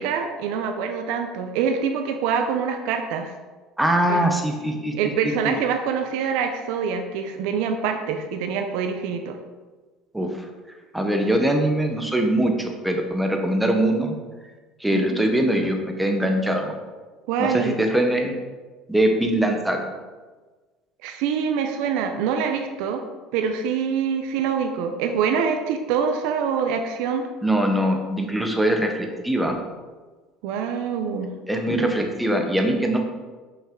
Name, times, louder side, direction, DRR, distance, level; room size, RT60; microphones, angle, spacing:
voice 1, 0.0-3.3 4.1-4.2 5.0-9.4 14.9-15.3 17.3-17.8 21.0-23.0 23.3-27.3 30.4-31.3, right 6 dB, 75° right, 5 dB, 0.5 m, -25 dB
voice 2, 3.8-4.9 5.2-5.5 10.1-10.3 10.9-14.1 14.8-16.7 17.4-18.3 18.9-19.9 27.4-29.5 31.5-33.0, right 1 dB, 5° right, 3 dB, 0.7 m, -22 dB
5.6 x 5.4 x 3.7 m, 1.3 s
cardioid pair, 160°, 0 cm